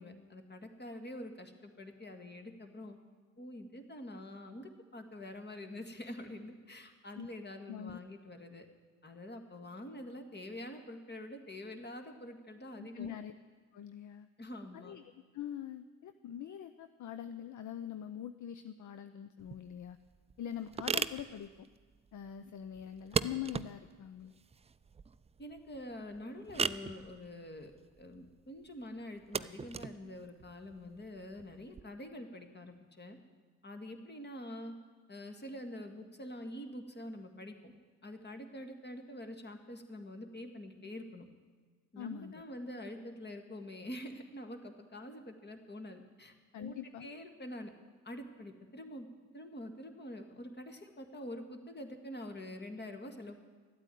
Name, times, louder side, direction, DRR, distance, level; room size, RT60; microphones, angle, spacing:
voice 1, 0.0-3.0 3.4-8.7 9.0-13.1 14.4-14.9 25.4-27.7 28.0-33.2 33.6-34.7 35.1-37.7 38.0-41.3 41.9-47.7 48.0-49.1 49.3-53.4, left 1 dB, 25° left, 6 dB, 2.0 m, -46 dB
voice 2, 7.7-8.0 12.8-13.3 13.7-14.3 14.7-15.0 15.3-20.0 20.4-21.7 22.1-24.3 42.0-42.4 46.5-47.1, left 10 dB, 50° left, 10 dB, 0.7 m, -43 dB
sound 1, 19.4-31.8, right 5 dB, 15° right, 0.4 m, -40 dB
13.0 x 8.9 x 9.3 m, 1.5 s
supercardioid pair, 60°, 38 cm